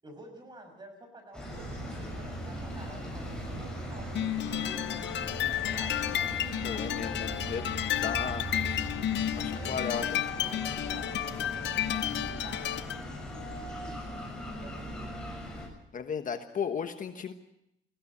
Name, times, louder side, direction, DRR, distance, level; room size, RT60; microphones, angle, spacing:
voice 1, 0.0-5.9 9.4-14.3 14.6-15.3, right 1 dB, 20° right, 4 dB, 6.2 m, -50 dB
sound 1, 1.3-15.7, equal, 5° left, 7.3 m, -39 dB
sound 2, 1.5-7.8, right 4 dB, 80° right, 6.2 m, -46 dB
sound 3, 4.1-13.0, left 11 dB, 60° left, 0.9 m, -32 dB
voice 2, 6.6-7.7 8.0-8.5 9.3-10.0 15.9-17.3, left 6 dB, 40° left, 8 dB, 1.3 m, -35 dB
21.5 x 16.0 x 9.7 m, 0.81 s
cardioid pair, 155°, 20 cm